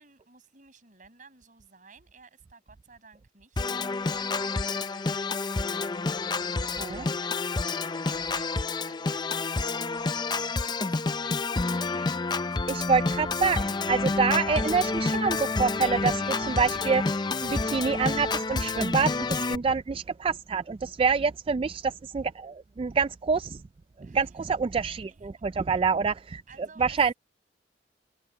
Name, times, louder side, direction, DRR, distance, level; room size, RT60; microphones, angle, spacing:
voice 1, 0.0-7.8 8.0-10.2 10.6-13.2 14.4-14.6 16.2-16.6 24.0-24.5 24.9-25.3 26.5-27.0, right 5 dB, 45° right, 7.0 m, -54 dB
Organ, 3.6-19.6, left 3 dB, 25° left, 0.5 m, -29 dB
voice 2, 12.7-16.2 16.5-17.0 17.4-23.6 24.0-26.4 26.8-27.1, right 5 dB, 30° right, 0.3 m, -26 dB
head